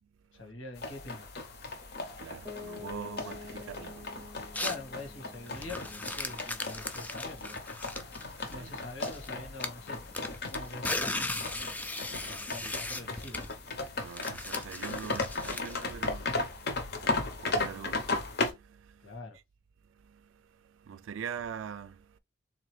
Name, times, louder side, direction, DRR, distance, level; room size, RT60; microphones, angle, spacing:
voice 1, 0.3-1.3 4.6-7.6 8.5-10.0 10.5-11.1 12.4-13.5 19.0-19.4, left 3 dB, 80° left, 1.5 m, -44 dB
sound 1, 0.7-18.5, left 3 dB, 55° left, 0.8 m, -36 dB
voice 2, 1.6-4.6 8.3-8.7 11.8-13.1 13.8-19.1 20.0-22.2, right 7 dB, 75° right, 0.3 m, -45 dB
Piano, 2.5-8.2, left 4 dB, 10° right, 0.7 m, -50 dB
sound 2, 4.5-4.9 5.5-9.3 9.6-15.9, left 2 dB, 10° left, 0.3 m, -37 dB
3.8 x 2.9 x 3.1 m
head